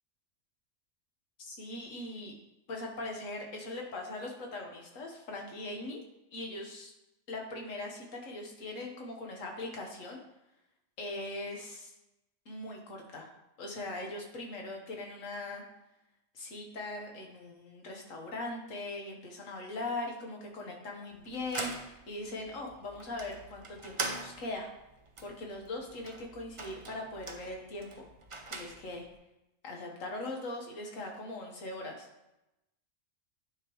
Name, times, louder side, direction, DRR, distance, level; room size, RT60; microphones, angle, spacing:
voice 1, 1.4-2.3 2.7-6.0 6.3-6.9 7.3-10.2 11.0-11.9 12.4-13.3 13.6-15.6 16.3-24.7 25.2-28.1 28.5-29.1 29.6-32.1, left 2 dB, 75° left, 1 dB, 1.6 m, -40 dB
sound 1, 21.1-29.1, right 3 dB, 40° right, 0.4 m, -43 dB
9.8 x 5.1 x 3.0 m, 0.93 s
omnidirectional pair, 1.4 m